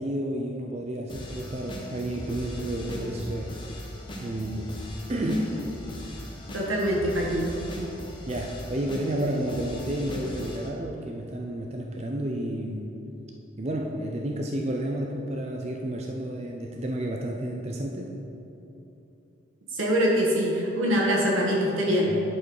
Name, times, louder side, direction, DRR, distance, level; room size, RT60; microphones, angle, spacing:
voice 1, 0.0-3.6 4.2-4.7 5.1-5.5 8.3-13.0 13.6-18.2 22.1-22.2, right 1 dB, 30° right, 1 dB, 0.5 m, -31 dB
sound 1, 1.1-10.7, equal, 25° left, 0.9 m, -39 dB
voice 2, 6.5-7.5 19.7-22.1, equal, 90° right, -3 dB, 1.6 m, -24 dB
10.5 x 4.6 x 4.8 m, 2.9 s
head